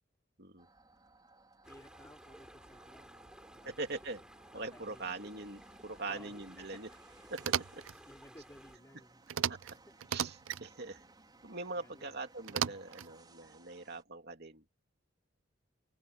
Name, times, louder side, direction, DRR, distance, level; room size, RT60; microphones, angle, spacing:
sound 1, 0.6-14.0, right 2 dB, 20° right, 5.0 m, -61 dB
voice 1, 1.6-3.9 4.5-5.1 6.1-6.8 8.1-9.2 9.7-9.9 11.7-12.2, left 1 dB, 15° left, 3.0 m, -58 dB
sound 2, 1.6-8.8, equal, 5° right, 7.9 m, -57 dB
voice 2, 3.6-4.2 4.5-6.9 7.3-7.8 9.5-9.6 10.1-11.0 11.4-14.7, right 3 dB, 55° right, 2.9 m, -42 dB
sound 3, 7.4-7.9 9.3-9.7 10.0-10.6 12.5-13.1, right 9 dB, 75° right, 0.5 m, -35 dB
open air
head